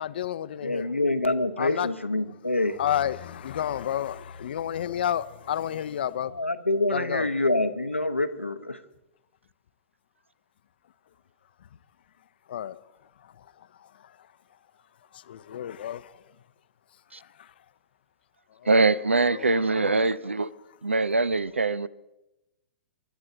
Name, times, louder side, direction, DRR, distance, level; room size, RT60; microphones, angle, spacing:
voice 1, 0.0-0.9 1.6-1.9 2.8-6.3 6.9-7.3 12.5-12.8 13.2-14.3 15.1-16.2 17.2-17.5 18.5-18.7 19.3-20.1, left 10 dB, 55° left, 0.6 m, -31 dB
voice 2, 0.6-2.8 6.2-8.8, left 2 dB, 90° left, 1.0 m, -26 dB
voice 3, 18.7-20.5 20.8-21.9, right 3 dB, 80° right, 0.6 m, -23 dB
27.0 x 12.5 x 3.9 m
figure-of-eight pair, 105°, 7 cm